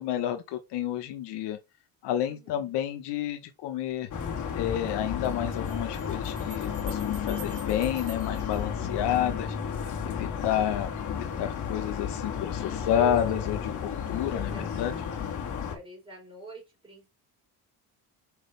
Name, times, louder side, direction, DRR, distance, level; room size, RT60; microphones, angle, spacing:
voice 1, 0.0-1.6 2.0-4.1 4.5-9.6 10.0-14.9, left 11 dB, 85° left, 1.2 m, -30 dB
voice 2, 2.2-2.7 13.0-13.4 14.2-14.8 15.4-17.1, right 4 dB, 10° right, 3.7 m, -42 dB
sound 1, 3.9-4.0 5.5-9.5, right 5 dB, 65° right, 4.9 m, -50 dB
sound 2, 4.1-15.8, left 7 dB, 45° left, 2.1 m, -33 dB
6.4 x 5.1 x 3.4 m
cardioid pair, 165°, 40 cm